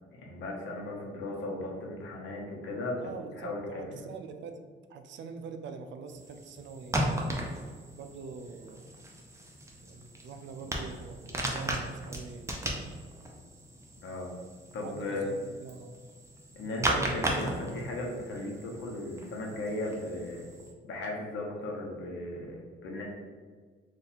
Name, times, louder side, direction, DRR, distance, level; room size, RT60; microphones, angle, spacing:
voice 1, 0.1-3.1 3.4-3.8 14.0-14.3 14.7-15.3 16.5-20.5 20.8-23.0, left 2 dB, 75° left, -2 dB, 0.9 m, -36 dB
voice 2, 2.9-7.2 7.9-9.1 9.8-12.6 14.8-16.0, right 5 dB, 70° right, 6 dB, 0.4 m, -44 dB
sound 1, 6.1-20.7, right 1 dB, 15° right, 0.6 m, -37 dB
2.7 x 2.6 x 4.0 m, 1.6 s
cardioid pair, 90°, 20 cm